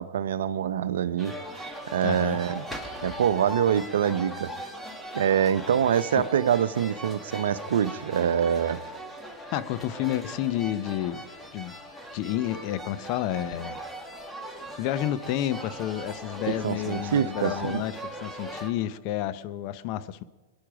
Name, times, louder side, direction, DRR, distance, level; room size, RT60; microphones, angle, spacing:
voice 1, 0.0-2.6 3.0-4.5 5.1-8.8 16.6-17.8, right 9 dB, 75° right, 0.7 m, -25 dB
sound 1, 1.2-18.7, right 1 dB, 5° left, 1.9 m, -39 dB
voice 2, 2.0-2.4 6.2-6.3 9.5-11.3 11.5-11.7 12.1-13.8 14.8-20.2, left 12 dB, 50° left, 0.8 m, -30 dB
23.0 x 10.5 x 5.0 m
hypercardioid pair, 110°, 0 cm